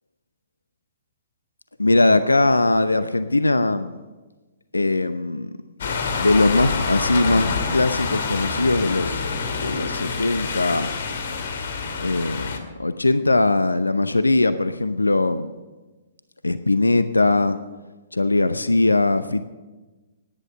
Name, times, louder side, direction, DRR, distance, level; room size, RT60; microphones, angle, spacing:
voice 1, 1.8-4.0 4.7-5.5 6.2-9.2 9.5-10.9 12.0-15.5 16.4-17.6 18.1-19.4, left 2 dB, 80° left, 12 dB, 0.7 m, -20 dB
sound 1, 5.8-12.6, left 4 dB, 55° left, 2.0 m, -27 dB
17.5 x 11.0 x 6.3 m, 1.2 s
figure-of-eight pair, 120°, 0 cm